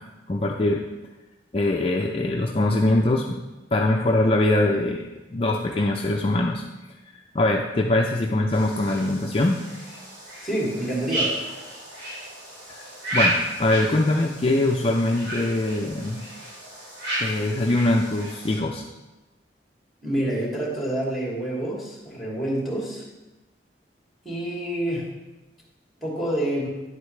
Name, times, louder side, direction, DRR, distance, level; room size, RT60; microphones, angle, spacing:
voice 1, 0.3-0.8 1.5-3.4 3.7-6.6 7.3-9.6 12.7-12.8 13.1-16.2 17.2-18.8, left 2 dB, 30° left, 1 dB, 0.5 m, -22 dB
sound 1, 8.5-18.6, right 1 dB, 70° right, 3.1 m, -32 dB
voice 2, 10.4-11.4 20.0-23.0 24.2-25.1 26.0-26.7, right 1 dB, ahead, -5 dB, 2.7 m, -27 dB
10.0 x 8.1 x 3.2 m, 1.1 s
head